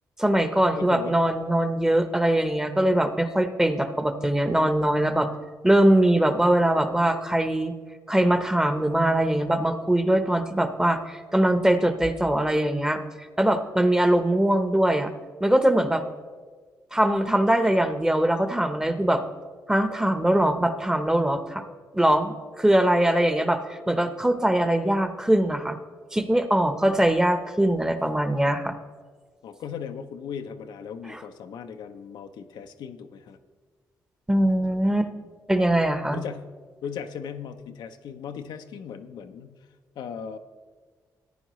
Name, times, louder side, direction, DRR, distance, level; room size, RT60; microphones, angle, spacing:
voice 1, 0.2-5.3 5.6-7.7 8.1-13.0 13.4-15.1 15.4-16.0 16.9-19.2 19.7-21.6 21.9-25.8 26.1-28.7 31.1-31.2 34.3-35.1 35.5-36.2, right 1 dB, 10° right, 9 dB, 0.8 m, -22 dB
voice 2, 0.8-1.2 26.8-27.0 29.4-33.4 36.1-36.5 36.8-39.6 40.0-40.4, left 7 dB, 90° left, 7 dB, 0.6 m, -37 dB
14.0 x 9.8 x 3.1 m, 1.5 s
cardioid pair, 90°, 7 cm